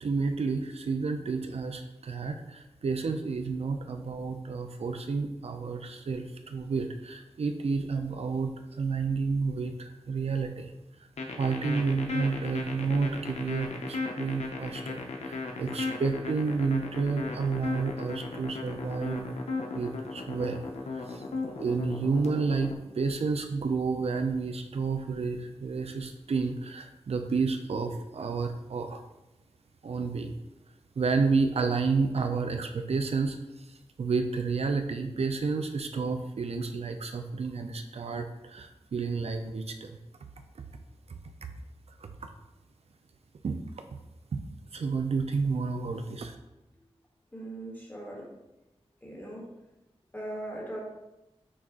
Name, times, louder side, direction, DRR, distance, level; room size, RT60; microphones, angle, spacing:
voice 1, 0.0-10.7 11.4-19.3 19.7-20.7 20.9-21.2 21.6-29.0 29.8-30.4 31.0-40.0 40.6-40.7 41.1-41.5 42.0-42.3 43.4-43.6 43.9-44.0 44.3-44.4 44.7-46.3, right 4 dB, 70° right, 6 dB, 0.4 m, -30 dB
sound 1, 11.2-22.8, left 3 dB, 90° left, 0.6 m, -35 dB
voice 2, 47.3-48.3 49.0-49.5 50.1-50.8, right 1 dB, 15° left, -3 dB, 1.4 m, -39 dB
6.1 x 2.4 x 3.6 m, 0.96 s
wide cardioid pair, 80°, 11 cm